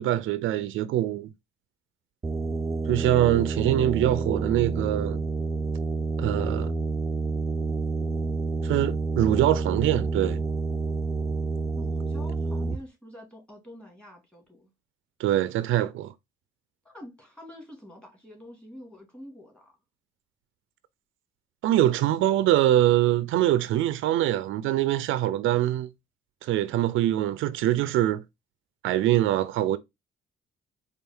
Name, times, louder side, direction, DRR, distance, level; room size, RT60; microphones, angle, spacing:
voice 1, 0.0-1.3 2.9-5.2 6.2-6.7 8.6-10.4 15.2-16.1 21.6-25.9 26.4-28.2 28.8-29.8, right 13 dB, 85° right, 0.5 m, -24 dB
sound 1, 2.2-12.8, right 3 dB, 15° right, 0.4 m, -29 dB
voice 2, 11.8-14.7 16.8-19.7, left 1 dB, 5° left, 2.0 m, -46 dB
4.4 x 2.4 x 3.4 m
cardioid pair, 90°, 20 cm